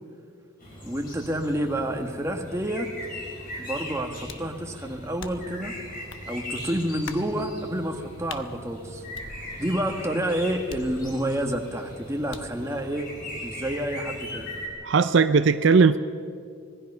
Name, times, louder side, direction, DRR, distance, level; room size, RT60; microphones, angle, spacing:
sound 1, 0.6-14.7, left 1 dB, 45° left, 6.0 m, -39 dB
voice 1, 0.8-2.9 3.6-5.7 6.3-9.0 9.6-13.1 13.4-14.5, right 1 dB, 15° right, 3 dB, 1.6 m, -29 dB
sound 2, 4.3-4.6 5.2-5.6 6.1-6.3 7.1-7.3 8.3-8.5 9.1-9.8 10.7-11.4 12.3-12.6, left 5 dB, 70° left, 1.0 m, -42 dB
voice 2, 14.8-16.0, right 5 dB, 65° right, 11 dB, 0.5 m, -18 dB
25.5 x 20.0 x 5.6 m, 2.3 s
head